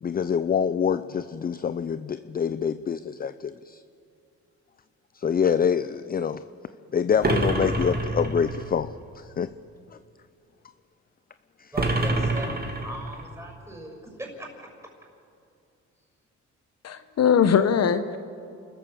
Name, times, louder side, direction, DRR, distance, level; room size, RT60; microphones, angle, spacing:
voice 1, 0.0-3.8 5.1-6.4 6.9-8.9 9.2-9.5 11.6-11.7, left 7 dB, 30° left, 13 dB, 0.5 m, -26 dB
sound 1, 7.2-8.7 11.8-13.3, right 2 dB, 30° right, 2.7 m, -26 dB
voice 2, 11.7-14.7, right 1 dB, 10° right, 2 dB, 6.0 m, -39 dB
voice 3, 16.8-18.2, left 7 dB, 55° left, 10 dB, 1.0 m, -21 dB
29.5 x 14.0 x 7.2 m, 2.5 s
cardioid pair, 90°, 30 cm